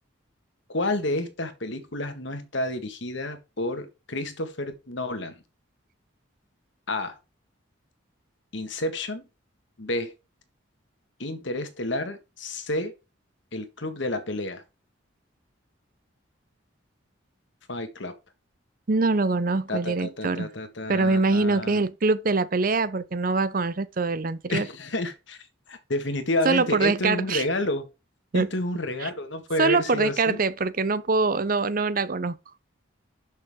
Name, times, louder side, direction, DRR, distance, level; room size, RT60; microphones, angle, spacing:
voice 1, 0.7-5.4 6.9-7.2 8.5-9.2 9.8-10.1 11.2-13.0 13.5-14.6 17.7-18.1 19.7-21.9 24.5-25.4 25.7-27.9 28.3-30.4, left 1 dB, 65° left, 1.7 m, -30 dB
voice 2, 18.9-20.5 20.9-24.7 26.4-27.4 28.3-28.5 29.0-29.1 29.6-32.3, right 3 dB, 45° right, 0.6 m, -24 dB
11.5 x 6.5 x 3.7 m
head